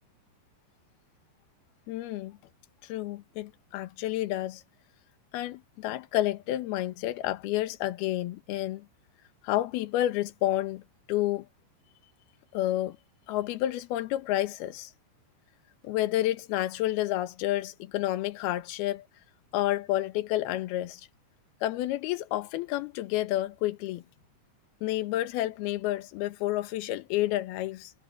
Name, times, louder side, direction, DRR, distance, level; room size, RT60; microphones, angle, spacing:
voice 1, 1.9-2.4 2.8-4.6 5.3-8.9 9.4-10.8 11.1-11.5 12.5-13.0 13.3-14.9 15.8-19.0 19.5-21.1 21.6-24.0 24.8-27.9, left 14 dB, 70° left, 2.9 m, -30 dB
omnidirectional pair, 5.2 m